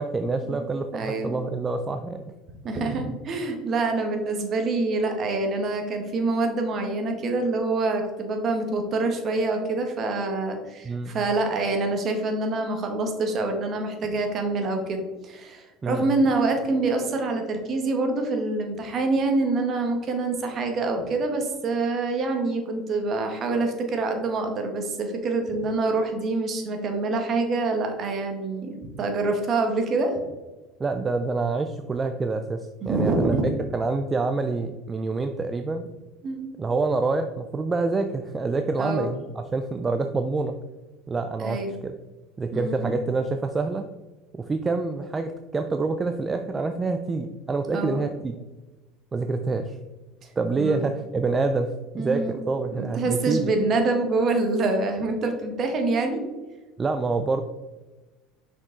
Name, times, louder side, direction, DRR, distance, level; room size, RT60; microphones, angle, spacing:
voice 1, 0.0-2.2 10.8-11.2 15.8-16.1 30.8-35.9 36.6-40.6 41.1-41.9 42.4-43.9 44.3-48.4 49.1-49.8 50.4-51.7 52.0-53.5 56.8-57.4, right 3 dB, 20° right, 7 dB, 0.4 m, -27 dB
voice 2, 0.9-1.4 2.6-30.1 32.8-33.4 36.2-36.5 38.8-39.1 41.4-41.7 42.5-42.9 47.7-48.0 50.6-50.8 52.0-52.3 52.7-56.2, right 3 dB, 40° right, 4 dB, 1.3 m, -26 dB
6.0 x 5.0 x 3.8 m, 1.2 s
supercardioid pair, 105°, 0 cm